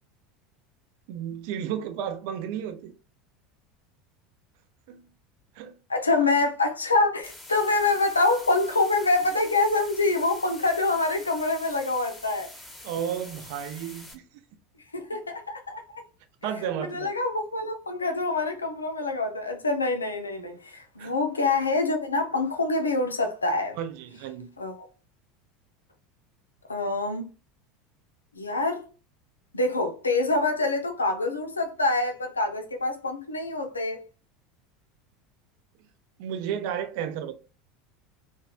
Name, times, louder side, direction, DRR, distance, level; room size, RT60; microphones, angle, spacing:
voice 1, 1.1-2.9 4.9-5.0 5.6-5.7 12.8-14.2 16.4-17.1 21.0-21.1 23.8-24.5 36.2-37.3, right 9 dB, 60° right, 0.3 m, -32 dB
voice 2, 5.9-12.5 14.9-16.0 16.8-23.8 24.6-24.9 26.7-27.3 28.4-28.8 29.5-34.0, left 3 dB, 85° left, 0.4 m, -26 dB
sound 1, 7.2-14.1, left 1 dB, 5° left, 1.0 m, -45 dB
2.9 x 2.1 x 2.3 m
figure-of-eight pair, 75°, 0 cm